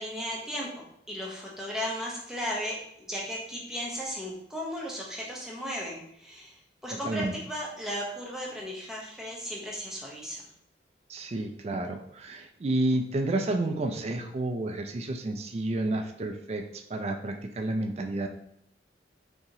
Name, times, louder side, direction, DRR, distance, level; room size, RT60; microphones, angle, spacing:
voice 1, 0.0-10.4, equal, 5° right, -3 dB, 0.7 m, -36 dB
voice 2, 6.9-7.3 11.1-18.3, right 2 dB, 35° right, 5 dB, 0.3 m, -30 dB
3.9 x 2.9 x 2.7 m, 0.73 s
head